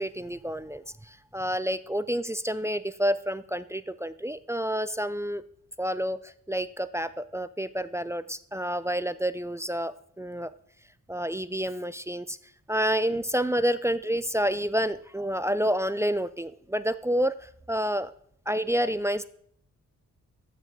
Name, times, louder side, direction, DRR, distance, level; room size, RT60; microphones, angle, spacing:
voice 1, 0.0-5.4 5.8-10.5 11.1-12.4 12.7-18.1 18.5-19.2, equal, 10° right, 14 dB, 0.3 m, -29 dB
13.5 x 5.7 x 3.6 m, 0.65 s
cardioid pair, 80°, 30 cm